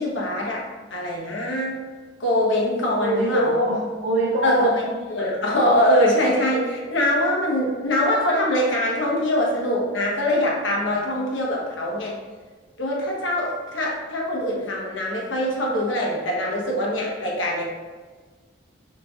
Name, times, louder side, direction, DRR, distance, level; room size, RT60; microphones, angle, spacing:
voice 1, 0.0-1.8 2.2-3.5 4.4-12.2 12.8-17.6, left 1 dB, 85° left, -3 dB, 1.1 m, -23 dB
voice 2, 2.9-4.7, right 1 dB, 60° right, -7 dB, 0.7 m, -23 dB
6.2 x 3.1 x 2.4 m, 1.4 s
head